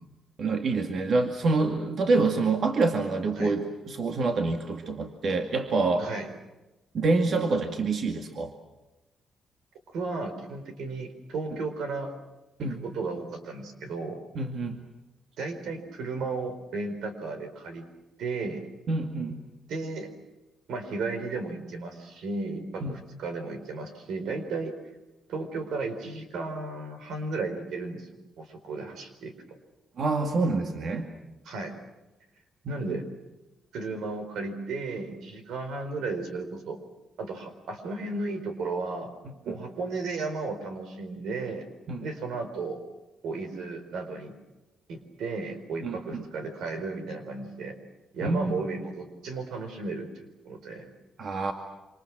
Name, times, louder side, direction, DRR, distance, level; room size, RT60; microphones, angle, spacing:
voice 1, 0.4-6.1 6.9-8.5 12.6-12.8 14.3-14.8 18.9-19.4 22.8-23.0 30.0-31.1 32.6-33.0 39.5-39.6 41.9-42.1 45.8-46.2 48.2-48.5 51.2-51.5, right 3 dB, 55° right, 4 dB, 2.2 m, -27 dB
voice 2, 6.0-6.3 9.9-12.1 12.6-14.2 15.4-17.9 18.2-18.6 19.7-20.1 20.7-24.7 25.3-28.1 28.4-29.3 31.4-31.7 32.7-33.0 33.7-36.8 37.2-39.1 39.4-41.7 42.0-42.8 43.2-44.3 44.9-47.7 48.1-50.9, right 3 dB, 85° right, 8 dB, 4.5 m, -34 dB
27.0 x 27.0 x 6.1 m, 1.0 s
cardioid pair, 125°, 0 cm